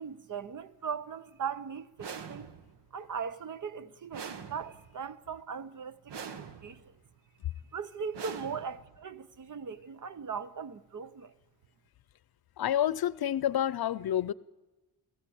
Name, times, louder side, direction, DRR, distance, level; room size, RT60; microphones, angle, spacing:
voice 1, 0.0-2.5 2.9-6.9 7.7-11.3, right 6 dB, 50° right, 0.8 m, -39 dB
sound 1, 2.0-2.9 4.1-5.0 6.1-6.9 8.1-9.0, right 6 dB, 85° right, 1.3 m, -44 dB
voice 2, 12.6-14.3, left 11 dB, 65° left, 0.7 m, -28 dB
20.5 x 15.0 x 8.7 m
wide cardioid pair, 145°, 41 cm